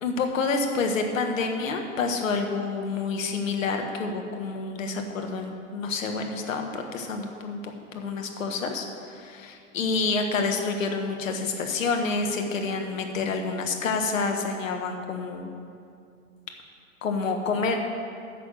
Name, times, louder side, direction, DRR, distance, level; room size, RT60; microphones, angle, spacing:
voice 1, 0.0-7.6 7.9-15.5 17.0-17.8, left 4 dB, 70° left, 3 dB, 1.6 m, -28 dB
10.5 x 6.0 x 7.6 m, 2.4 s
figure-of-eight pair, 105°, 41 cm